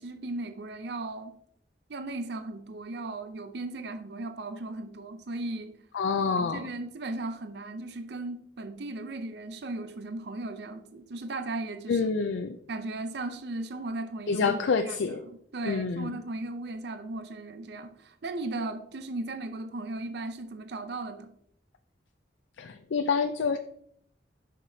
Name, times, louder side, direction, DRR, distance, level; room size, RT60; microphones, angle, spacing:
voice 1, 0.0-1.4 1.9-5.8 6.4-12.1 12.7-21.3, right 2 dB, 65° right, 0.5 m, -37 dB
voice 2, 5.9-6.7 11.9-12.6 14.3-15.2 15.7-16.1 22.6-23.6, left 5 dB, 90° left, 0.4 m, -27 dB
7.3 x 5.8 x 2.7 m
head